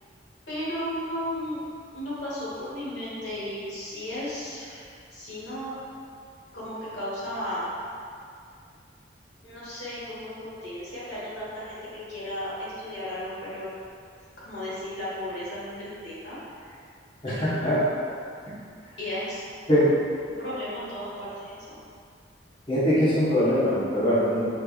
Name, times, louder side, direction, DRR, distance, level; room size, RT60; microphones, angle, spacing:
voice 1, 0.5-1.6 1.9-4.8 5.1-5.7 6.5-7.6 9.4-13.7 14.4-16.8 17.3-17.8 19.0-19.5 20.4-21.8, left 1 dB, 80° left, -9 dB, 1.4 m, -35 dB
voice 2, 17.2-17.8 19.7-19.9 22.7-24.4, equal, 30° left, -12 dB, 1.2 m, -22 dB
5.2 x 3.3 x 2.4 m, 2.3 s
head